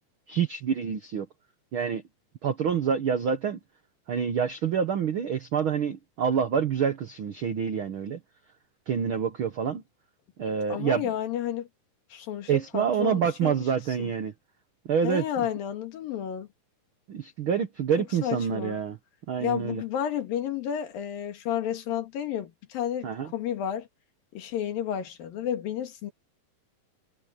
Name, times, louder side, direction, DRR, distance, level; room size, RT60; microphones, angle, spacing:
voice 1, 0.3-1.3 1.7-2.0 2.4-3.6 4.1-8.2 8.9-9.8 10.4-11.1 12.5-14.3 14.8-15.5 17.1-19.0 19.3-19.8 23.0-23.3, right 7 dB, 70° right, 1.2 m, -27 dB
voice 2, 10.7-11.7 12.1-13.7 14.0-14.1 15.0-16.5 18.2-18.8 19.4-23.9 24.3-26.1, left 10 dB, 80° left, 3.8 m, -31 dB
omnidirectional pair, 4.0 m